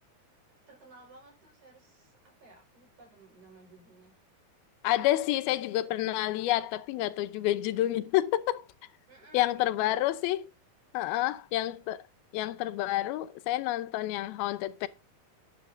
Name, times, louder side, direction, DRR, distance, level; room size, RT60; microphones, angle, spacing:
voice 1, 0.7-4.1 9.1-10.1 11.2-11.4, right 4 dB, 55° right, 6.3 m, -55 dB
voice 2, 4.8-8.7 9.3-10.4 10.9-12.0 12.3-14.9, left 14 dB, 90° left, 2.7 m, -29 dB
13.5 x 11.0 x 2.6 m
omnidirectional pair, 4.2 m